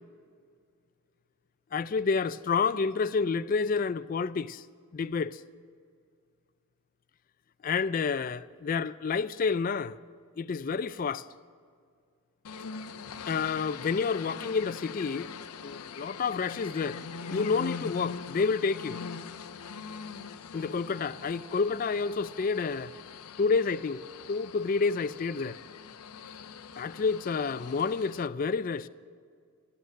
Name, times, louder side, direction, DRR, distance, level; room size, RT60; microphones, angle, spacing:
voice 1, 1.7-4.7 4.9-5.4 7.6-10.0 10.4-11.3 13.3-15.3 15.6-17.0 17.3-19.0 20.5-22.9 23.4-25.6 26.8-28.9, left 5 dB, 40° left, 0.3 m, -29 dB
sound 1, 12.4-28.3, left 5 dB, 85° left, 0.6 m, -42 dB
14.0 x 11.5 x 6.3 m
head